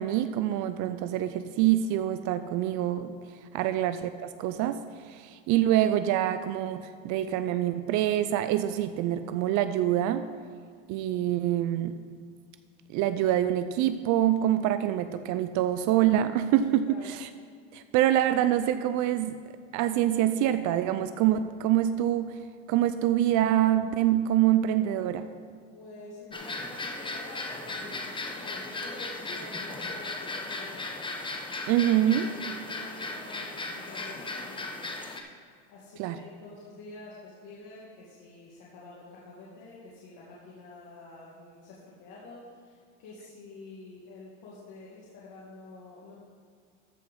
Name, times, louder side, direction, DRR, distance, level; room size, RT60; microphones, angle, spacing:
voice 1, 0.0-3.1 3.5-10.3 10.9-12.0 12.9-17.3 17.7-19.4 19.7-22.3 22.7-25.3 31.7-32.3 36.0-36.2, right 12 dB, 55° right, 11 dB, 0.5 m, -25 dB
voice 2, 16.8-17.1 25.7-31.0 31.8-31.9 32.2-34.9 35.7-46.1, left 2 dB, 60° left, -6 dB, 2.3 m, -48 dB
sound 1, 26.3-35.2, left 2 dB, 15° left, 0.9 m, -36 dB
14.0 x 4.8 x 5.4 m, 2.1 s
supercardioid pair, 115°, 36 cm